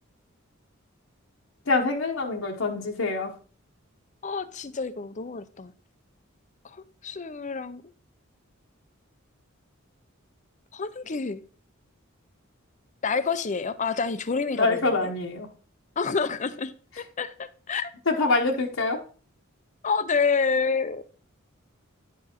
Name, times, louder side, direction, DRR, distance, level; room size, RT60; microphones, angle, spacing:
voice 1, 1.7-3.4 14.5-15.5 18.1-19.0, left 3 dB, 70° left, 1 dB, 1.1 m, -25 dB
voice 2, 4.2-5.7 6.6-7.8 10.7-11.4 13.0-15.1 16.0-17.9 19.8-21.0, left 5 dB, 35° left, 13 dB, 0.6 m, -28 dB
10.0 x 4.8 x 4.5 m, 0.41 s
head